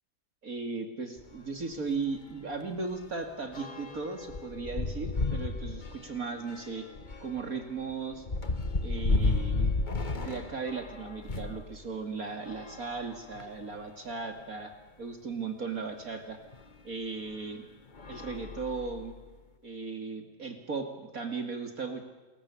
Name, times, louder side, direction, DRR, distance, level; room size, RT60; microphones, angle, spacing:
voice 1, 0.4-6.9 7.2-8.3 8.8-9.7 10.1-14.7 15.0-16.4 16.8-17.7 18.1-19.1 19.6-22.0, right 4 dB, 50° right, 6 dB, 2.8 m, -37 dB
sound 1, 1.2-1.4 1.7-1.8 2.2-11.6 12.4-13.7 14.4-14.5 14.7-14.8 16.5-16.7 17.3-17.5 17.9-19.2, left 3 dB, 25° left, 1.6 m, -33 dB
29.0 x 22.0 x 8.5 m, 1.2 s
omnidirectional pair, 1.9 m